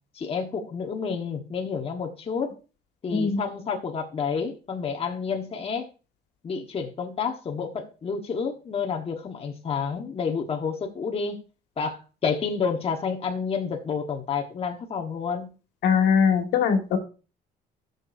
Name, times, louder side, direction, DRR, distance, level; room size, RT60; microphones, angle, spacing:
voice 1, 0.1-2.5 3.0-5.9 6.4-11.4 11.8-15.5, left 5 dB, 35° left, 1.3 m, -29 dB
voice 2, 3.1-3.4 15.8-17.0, left 6 dB, 80° left, 1.8 m, -21 dB
14.5 x 6.7 x 2.7 m
cardioid pair, 110°, 17 cm